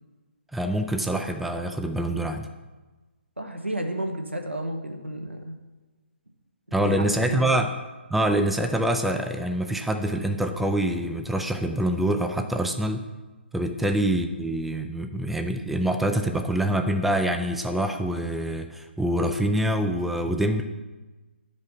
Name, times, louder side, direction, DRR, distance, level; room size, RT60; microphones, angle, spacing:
voice 1, 0.5-2.5 6.7-7.7 8.1-13.1 13.5-20.6, right 1 dB, ahead, 6 dB, 0.3 m, -25 dB
voice 2, 3.4-5.6 6.7-7.6 13.8-13.9, right 1 dB, 90° right, 3 dB, 1.3 m, -32 dB
11.0 x 5.1 x 4.3 m, 1.2 s
figure-of-eight pair, 135°, 6 cm